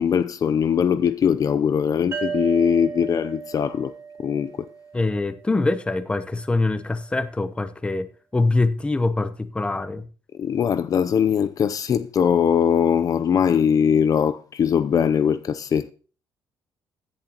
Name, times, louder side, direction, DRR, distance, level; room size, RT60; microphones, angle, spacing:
voice 1, 0.0-3.9 4.2-4.7 10.3-15.9, left 7 dB, 45° left, 0.6 m, -21 dB
sound 1, 2.1-5.6, right 6 dB, 30° right, 2.8 m, -34 dB
voice 2, 4.9-8.1 8.3-10.1, left 2 dB, 15° left, 0.8 m, -24 dB
16.0 x 11.0 x 3.0 m
cardioid pair, 125°, 8 cm